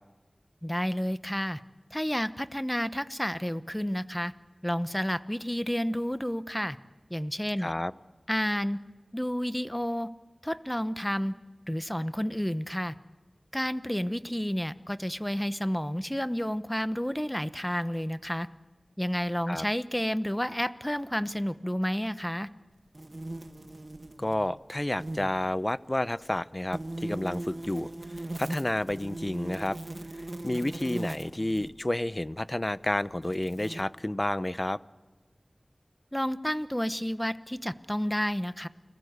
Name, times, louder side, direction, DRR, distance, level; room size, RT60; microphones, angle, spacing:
voice 1, 0.6-1.6 1.9-4.3 4.6-6.8 7.1-7.7 8.3-8.8 9.1-10.1 10.4-11.3 11.7-13.0 13.5-18.5 19.0-22.5 36.1-38.7, equal, 10° left, 13 dB, 1.0 m, -30 dB
voice 2, 7.6-7.9 19.5-19.6 24.2-27.9 28.4-29.8 30.4-34.8, left 1 dB, 30° left, 16 dB, 0.7 m, -30 dB
sound 1, 22.9-24.5 24.8-25.3 26.7-31.7 32.6-32.7 33.2-33.8, right 1 dB, 45° right, 1.2 m, -39 dB
29.5 x 21.0 x 8.1 m, 1.3 s
wide cardioid pair, 55°, 0 cm